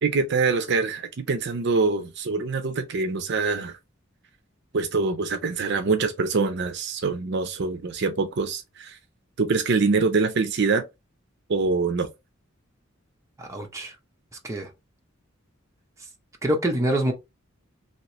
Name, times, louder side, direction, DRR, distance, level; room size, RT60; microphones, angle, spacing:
voice 1, 0.0-3.8 4.7-9.0 9.4-10.8 11.5-12.1, right 4 dB, 55° right, 0.5 m, -24 dB
voice 2, 13.4-14.0 14.4-14.7 16.4-17.1, right 1 dB, 15° right, 0.7 m, -25 dB
2.9 x 2.8 x 3.0 m
head